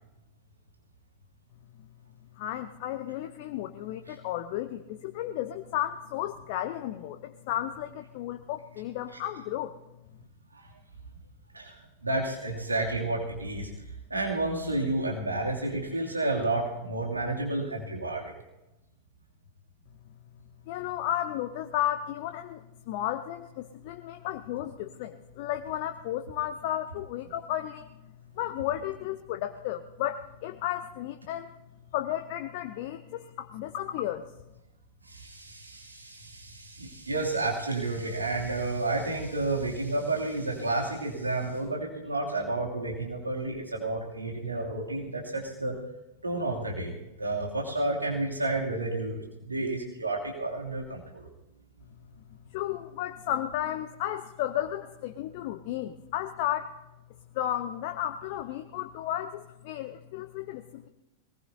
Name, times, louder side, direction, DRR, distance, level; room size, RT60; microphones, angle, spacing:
voice 1, 2.4-9.8 20.7-27.9 28.4-31.5 31.9-34.2 52.5-56.8 57.3-60.9, left 12 dB, 50° left, 7 dB, 0.7 m, -33 dB
voice 2, 11.5-13.7 14.1-18.3 35.1-45.8 46.2-46.9 47.2-51.3, right 2 dB, 80° right, -2 dB, 2.8 m, -31 dB
22.0 x 19.0 x 2.8 m, 0.96 s
figure-of-eight pair, 90°, 0 cm